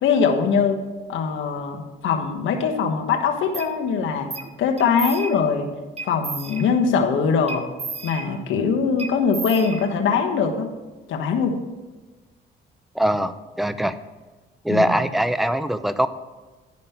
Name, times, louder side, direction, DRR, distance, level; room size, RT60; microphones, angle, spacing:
voice 1, 0.0-0.8 1.1-4.3 4.6-5.7 6.0-7.6 8.0-10.7 11.1-11.6 14.7-14.9, left 6 dB, 80° left, 4 dB, 1.2 m, -22 dB
sound 1, 3.5-3.7 4.3-4.5 4.8-5.6 6.0-7.0 7.5-8.6 9.0-10.2, right 4 dB, 30° right, 0.9 m, -34 dB
voice 2, 13.0-14.0 14.6-16.1, right 1 dB, ahead, 12 dB, 0.5 m, -22 dB
10.5 x 5.3 x 5.7 m, 1.2 s
cardioid pair, 90°, 20 cm